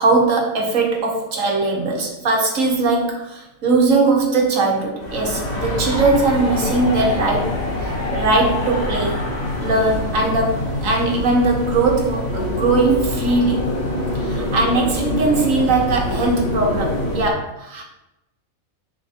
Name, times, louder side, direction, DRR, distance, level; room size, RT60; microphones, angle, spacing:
voice 1, 0.0-9.2 9.6-13.6 14.1-17.8, right 3 dB, 75° right, 0 dB, 1.5 m, -20 dB
sound 1, 5.0-17.3, left 1 dB, 35° left, 1.1 m, -24 dB
10.0 x 3.9 x 2.8 m, 0.92 s
omnidirectional pair, 1.4 m